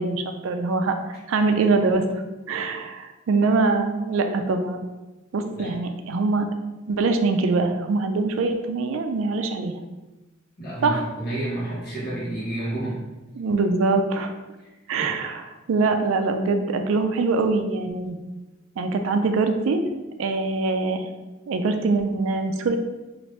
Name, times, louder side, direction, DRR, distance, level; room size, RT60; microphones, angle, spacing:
voice 1, 0.0-2.0 2.5-4.8 5.3-6.5 6.9-9.8 10.8-11.0 13.4-14.3 14.9-18.2 18.8-19.8 20.2-21.1 21.5-22.8, right 3 dB, 75° right, 6 dB, 0.4 m, -23 dB
voice 2, 10.6-13.0 14.6-14.7 15.0-15.1, right 1 dB, 50° left, -8 dB, 1.0 m, -30 dB
2.8 x 2.5 x 3.1 m, 1.1 s
head